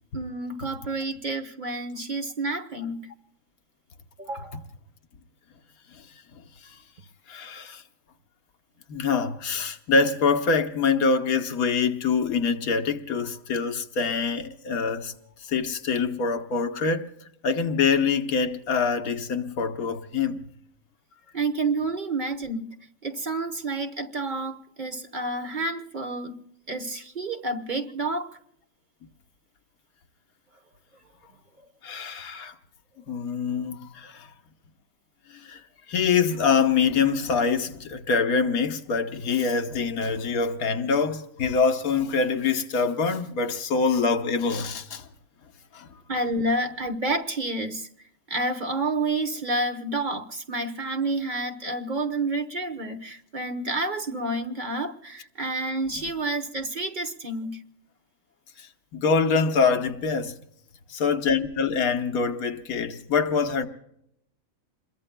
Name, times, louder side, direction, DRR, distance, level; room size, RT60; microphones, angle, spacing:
voice 1, 0.1-3.1 4.2-4.6 21.3-22.8 23.0-26.4 26.7-28.4 46.1-47.9 48.3-57.6, right 2 dB, 40° right, 1.1 m, -29 dB
voice 2, 7.3-7.8 8.9-15.1 15.4-17.1 17.4-20.4 31.8-32.5 33.1-34.3 35.3-35.6 35.9-45.0 45.7-45.9 58.6-58.7 58.9-60.4 60.9-63.7, left 5 dB, 90° left, 1.5 m, -25 dB
28.0 x 22.0 x 2.2 m
omnidirectional pair, 1.5 m